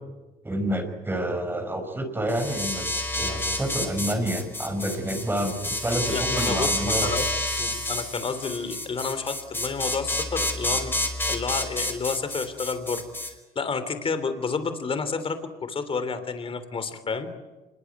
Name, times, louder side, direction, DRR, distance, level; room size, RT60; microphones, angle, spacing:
voice 1, 0.4-2.9 3.2-7.1, right 1 dB, 15° right, 6 dB, 5.0 m, -28 dB
sound 1, 2.3-13.3, left 1 dB, 10° left, 5.3 m, -29 dB
voice 2, 6.1-7.3 7.6-10.9 11.2-17.3, left 4 dB, 35° left, 11 dB, 3.3 m, -30 dB
26.5 x 23.0 x 9.4 m, 1.1 s
cardioid pair, 110°, 17 cm